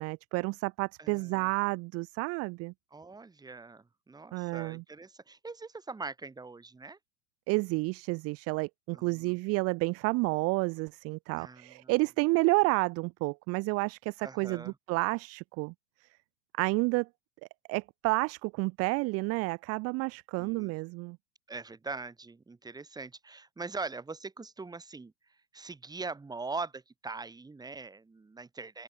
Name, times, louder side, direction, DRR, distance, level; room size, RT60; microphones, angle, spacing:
voice 1, 0.0-2.7 4.3-4.8 7.5-15.7 16.6-17.1 17.7-21.2, right 26 dB, 35° right, 0.6 m, -30 dB
voice 2, 1.0-1.5 2.9-7.0 8.9-9.3 11.3-11.9 14.2-14.8 20.4-20.7 21.5-25.1 25.5-28.8, right 3 dB, 10° right, 2.0 m, -42 dB
open air
hypercardioid pair, 120°, 42 cm